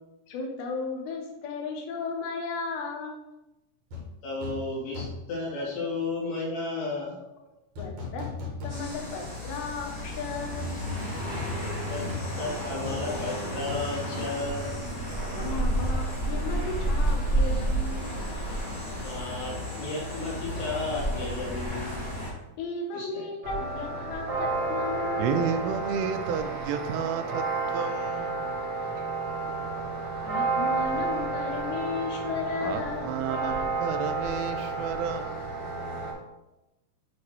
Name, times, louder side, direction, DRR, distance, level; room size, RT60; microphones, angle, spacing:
voice 1, 0.3-3.2 7.8-8.3 8.6-10.8 15.3-18.1 22.6-25.5 30.2-33.2, left 4 dB, 80° left, 1 dB, 3.2 m, -35 dB
sound 1, 3.9-4.1 4.4-4.7 4.9-5.4 7.8-9.2 9.6-9.7 11.3-15.0 15.2-15.4, left 4 dB, 70° right, 1.5 m, -38 dB
voice 2, 4.2-7.2 11.9-12.1 12.4-14.7 19.0-22.1 22.9-23.2, left 3 dB, 65° left, -5 dB, 3.6 m, -33 dB
sound 2, 8.7-22.3, right 1 dB, 30° left, 0.6 m, -31 dB
sound 3, 23.4-36.1, right 3 dB, 55° right, 1.3 m, -31 dB
voice 3, 25.2-27.4 27.7-28.5 32.6-35.4, right 7 dB, 85° right, 8 dB, 2.7 m, -31 dB
8.3 x 2.9 x 4.7 m, 0.96 s
omnidirectional pair, 4.9 m